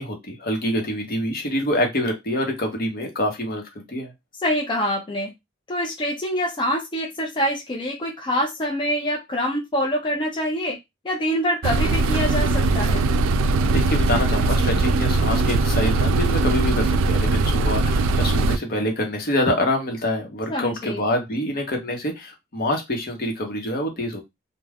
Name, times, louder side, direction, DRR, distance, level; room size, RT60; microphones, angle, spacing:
voice 1, 0.0-4.1 13.6-24.2, left 1 dB, 50° left, 0.8 m, -26 dB
voice 2, 4.4-5.3 5.7-10.8 11.0-13.1 20.5-21.0, equal, 25° left, 0.4 m, -25 dB
sound 1, 11.6-18.6, right 3 dB, 80° right, 0.3 m, -20 dB
2.3 x 2.1 x 3.3 m
head